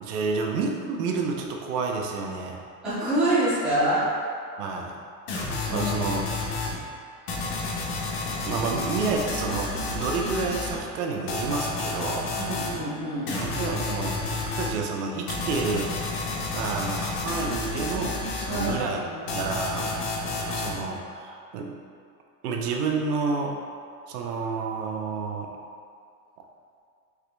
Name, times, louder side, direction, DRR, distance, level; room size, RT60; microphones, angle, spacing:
voice 1, 0.0-2.6 4.6-5.0 5.7-6.2 8.5-12.3 13.3-18.2 18.5-19.0 19.3-19.9 20.3-21.8 22.4-23.6 24.1-25.5, right 4 dB, 80° right, 1 dB, 0.8 m, -30 dB
voice 2, 2.8-4.1 5.7-5.9 12.4-13.3 18.5-19.3, right 1 dB, ahead, -14 dB, 0.4 m, -26 dB
sound 1, 5.3-6.8 7.3-10.8 11.3-12.8 13.3-14.8 15.3-18.8 19.3-20.8, left 3 dB, 90° left, 1.1 m, -30 dB
4.7 x 2.9 x 3.4 m, 2.3 s
supercardioid pair, 175°, 45 cm